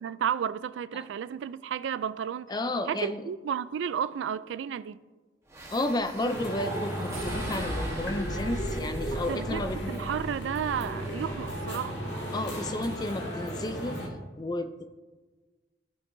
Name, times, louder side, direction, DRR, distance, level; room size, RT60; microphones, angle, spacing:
voice 1, 0.0-2.5 2.9-5.0 9.1-12.0, right 8 dB, 85° right, 0.3 m, -32 dB
voice 2, 2.5-3.2 5.7-9.9 12.3-14.0 14.4-14.9, left 1 dB, 20° left, 0.4 m, -32 dB
sound 1, 5.5-11.9, right 1 dB, 15° right, 1.1 m, -39 dB
sound 2, 6.3-14.1, equal, 85° left, 1.8 m, -35 dB
15.5 x 5.4 x 2.6 m
head